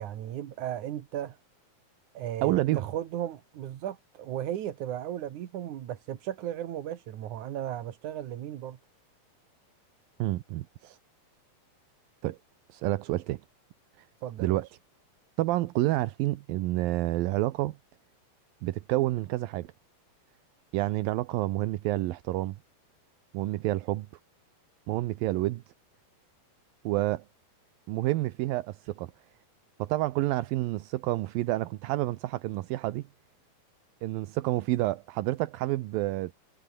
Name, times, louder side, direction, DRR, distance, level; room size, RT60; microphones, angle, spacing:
voice 1, 0.0-1.4 2.1-8.8 10.8-11.0 14.2-14.6, right 11 dB, 65° right, 2.7 m, -36 dB
voice 2, 2.4-2.8 10.2-10.7 12.2-12.4 12.7-13.4 14.4-14.7 15.4-17.8 18.6-19.7 20.7-22.6 23.3-24.1 24.9-25.6 26.8-27.2 27.9-29.1 29.8-33.1 34.0-36.3, right 17 dB, 80° right, 2.6 m, -29 dB
omnidirectional pair, 4.1 m